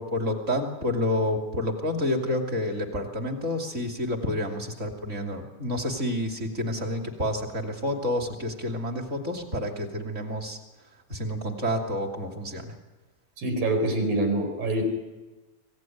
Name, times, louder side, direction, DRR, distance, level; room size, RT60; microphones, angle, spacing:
voice 1, 0.0-10.6 11.1-12.8, left 1 dB, 20° right, 2 dB, 2.6 m, -29 dB
voice 2, 13.4-14.8, right 2 dB, 75° right, 4 dB, 6.4 m, -25 dB
25.0 x 18.5 x 9.4 m, 1.2 s
omnidirectional pair, 4.1 m